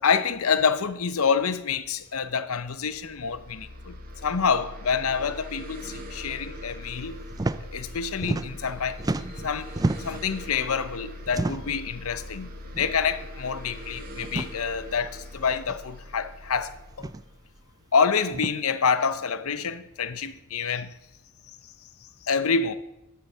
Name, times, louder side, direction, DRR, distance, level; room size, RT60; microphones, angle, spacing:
voice 1, 0.0-7.2 7.7-9.0 9.3-9.7 10.0-17.1 17.9-20.9 22.2-22.8, left 6 dB, 70° left, 0.8 m, -27 dB
sound 1, 2.7-18.1, left 1 dB, 40° right, 2.1 m, -41 dB
sound 2, 7.3-7.6 7.9-8.7 9.0-10.3 11.3-11.8 12.7-12.9 13.2-13.3 14.2-14.5 15.7-15.8 16.9-17.2 18.3-18.5, right 2 dB, 15° right, 0.4 m, -30 dB
13.5 x 7.7 x 5.6 m
head